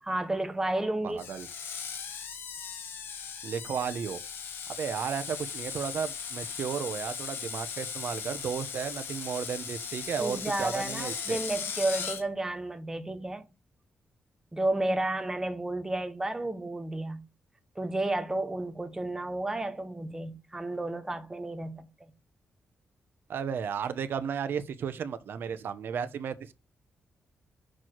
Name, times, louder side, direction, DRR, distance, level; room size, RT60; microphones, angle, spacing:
voice 1, 0.0-1.2 10.2-13.5 14.5-17.2 17.8-22.1, right 2 dB, 15° right, 1.0 m, -32 dB
voice 2, 1.0-1.5 3.4-4.2 4.8-11.4 23.3-26.5, right 7 dB, 65° right, 0.8 m, -34 dB
Screech, 1.2-12.2, left 6 dB, 90° left, 1.6 m, -38 dB
6.3 x 4.5 x 4.5 m
wide cardioid pair, 130°, 4 cm